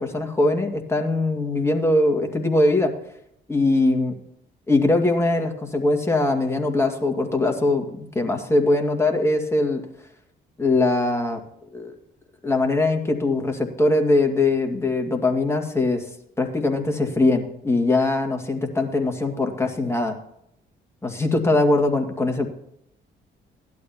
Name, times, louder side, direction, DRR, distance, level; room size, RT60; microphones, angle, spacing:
voice 1, 0.0-2.9 3.5-4.1 4.7-9.8 10.6-11.4 11.7-11.9 12.4-16.0 16.4-20.2 21.0-22.5, left 2 dB, 15° left, 3 dB, 2.0 m, -21 dB
16.0 x 12.0 x 2.9 m, 0.75 s
cardioid pair, 90°, 20 cm